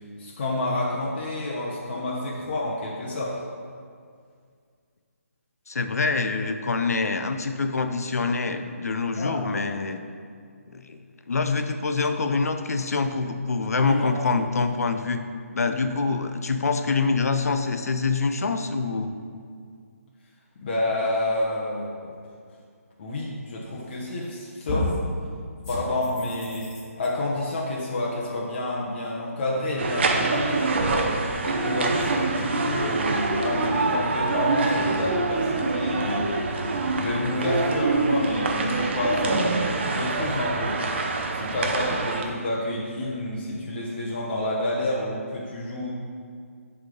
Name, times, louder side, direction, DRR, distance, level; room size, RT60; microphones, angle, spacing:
voice 1, 0.2-3.3 9.2-9.4 13.8-14.1 20.6-22.1 23.0-24.9 25.7-26.7 27.0-31.1 31.4-36.4 36.9-40.8 41.3-45.9, left 1 dB, 40° left, -5 dB, 1.0 m, -29 dB
voice 2, 5.7-10.0 10.7-15.2 15.5-19.2, left 4 dB, 75° left, 7 dB, 0.6 m, -25 dB
sound 1, 23.9-24.3 24.7-25.1 25.6-27.1, left 2 dB, 20° left, 1.8 m, -31 dB
sound 2, 29.8-42.2, right 3 dB, 45° right, 0.6 m, -25 dB
10.5 x 3.6 x 3.8 m, 2.2 s
hypercardioid pair, 160°, 8 cm